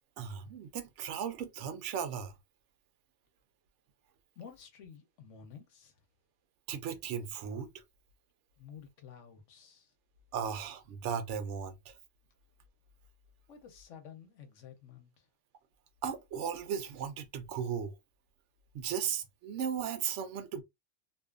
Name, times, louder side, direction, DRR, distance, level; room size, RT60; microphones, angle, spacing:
voice 1, 0.2-2.3 6.7-7.7 10.3-12.0 16.0-17.9 18.7-20.6, right 7 dB, 80° right, 0.9 m, -36 dB
voice 2, 4.4-5.9 8.6-9.9 13.5-15.3, left 7 dB, 85° left, 1.1 m, -52 dB
2.6 x 2.4 x 2.3 m
omnidirectional pair, 1.2 m